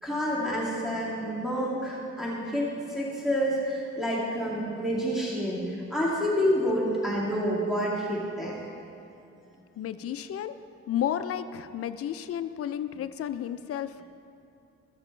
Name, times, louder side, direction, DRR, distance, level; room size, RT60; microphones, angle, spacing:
voice 1, 0.0-8.6, equal, ahead, -6 dB, 2.3 m, -28 dB
voice 2, 9.8-10.5 10.9-14.0, left 10 dB, 50° left, 12 dB, 0.5 m, -32 dB
14.5 x 7.2 x 3.2 m, 2.6 s
cardioid pair, 90°, 30 cm